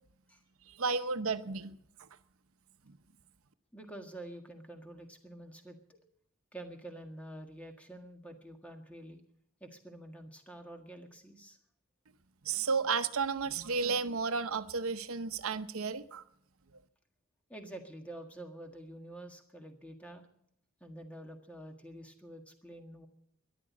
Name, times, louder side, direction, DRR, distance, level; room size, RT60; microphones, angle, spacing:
voice 1, 0.7-1.7 2.9-3.0 12.4-16.2, right 4 dB, 85° right, 0.9 m, -33 dB
voice 2, 3.7-6.0 6.5-9.2 9.6-11.6 17.5-20.3 20.8-23.1, right 1 dB, 5° left, 1.7 m, -48 dB
13.5 x 11.5 x 8.5 m
head